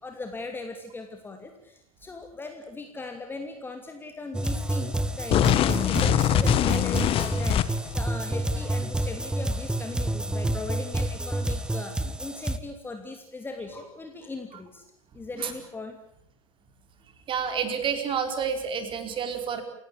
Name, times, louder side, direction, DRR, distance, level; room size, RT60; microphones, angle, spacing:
voice 1, 0.0-14.8 15.1-16.0, left 3 dB, 10° left, 5 dB, 2.8 m, -39 dB
sound 1, 4.3-12.6, right 1 dB, 5° right, 1.4 m, -29 dB
sound 2, 5.3-8.0, left 12 dB, 30° left, 1.3 m, -23 dB
voice 2, 17.3-19.6, right 7 dB, 30° right, 8 dB, 4.5 m, -29 dB
29.5 x 17.0 x 8.7 m, 0.72 s
figure-of-eight pair, 95°, 17 cm